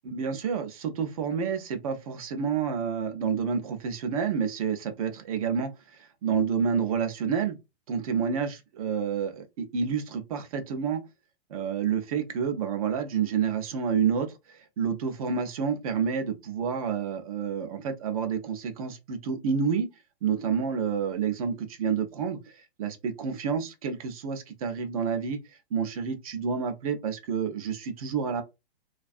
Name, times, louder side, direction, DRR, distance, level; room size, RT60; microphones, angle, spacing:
voice 1, 0.0-7.6 7.9-11.0 11.5-19.9 20.2-25.4 25.7-28.4, right 6 dB, 35° right, 0.4 m, -29 dB
2.5 x 2.3 x 2.3 m
hypercardioid pair, 145°, 32 cm